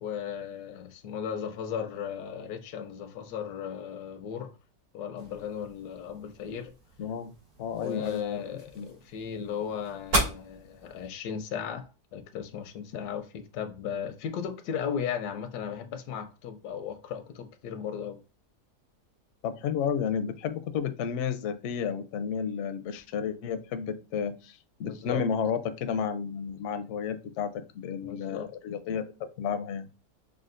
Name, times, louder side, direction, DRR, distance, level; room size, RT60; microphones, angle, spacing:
voice 1, 0.0-4.5 4.9-6.7 7.8-18.2 24.8-25.2 28.0-28.5, left 8 dB, 85° left, 1.1 m, -36 dB
sound 1, 5.2-11.1, right 1 dB, 75° right, 2.9 m, -36 dB
voice 2, 7.0-7.3 7.6-8.4 8.8-8.9 19.4-27.5 27.7-29.9, left 7 dB, 65° left, 0.7 m, -32 dB
6.2 x 2.3 x 2.5 m
omnidirectional pair, 1.7 m